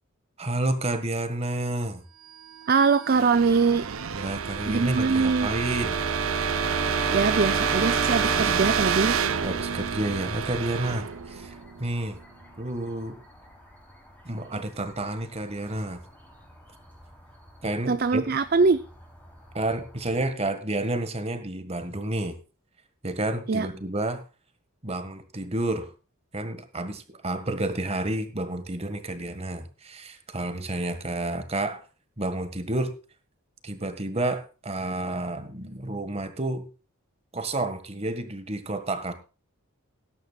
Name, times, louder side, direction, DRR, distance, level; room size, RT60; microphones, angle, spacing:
voice 1, 0.4-2.0 4.1-6.0 8.3-8.7 9.4-12.2 12.6-13.2 14.2-16.0 17.6-18.3 19.5-22.4 23.0-24.2 24.8-25.9 26.3-31.8 32.2-32.9 33.6-36.7 37.3-39.1, right 1 dB, 30° right, 10 dB, 1.6 m, -30 dB
sound 1, 2.4-12.2, right 7 dB, 70° right, 0.8 m, -28 dB
voice 2, 2.7-3.8 4.7-5.5 7.1-9.2 17.9-18.8 23.5-23.7, right 4 dB, 45° right, 12 dB, 0.5 m, -22 dB
Wind instrument woodwind instrument, 5.7-9.8, right 1 dB, 10° right, 1.2 m, -33 dB
sound 2, 7.4-20.3, equal, 10° left, 3.3 m, -52 dB
19.0 x 10.5 x 2.4 m, 0.32 s
head